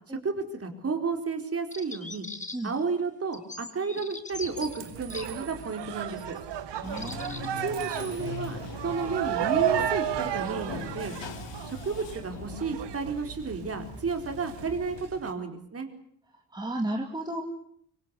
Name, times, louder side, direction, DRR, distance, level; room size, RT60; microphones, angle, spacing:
voice 1, 0.1-2.3 2.6-6.4 7.6-11.2 11.7-15.9, right 4 dB, 35° right, 5 dB, 4.5 m, -32 dB
sound 1, 1.7-2.8 3.3-5.3 6.1-6.3 6.9-7.5, left 3 dB, 15° left, 2.2 m, -41 dB
sound 2, 4.3-15.3, right 10 dB, 75° right, 2.3 m, -34 dB
Bathtub (filling or washing), 6.8-15.0, left 7 dB, 85° left, 3.5 m, -42 dB
voice 2, 6.8-7.6 16.5-17.4, right 1 dB, 10° right, 1 dB, 2.6 m, -33 dB
25.5 x 24.5 x 8.5 m, 0.66 s
cardioid pair, 145°, 42 cm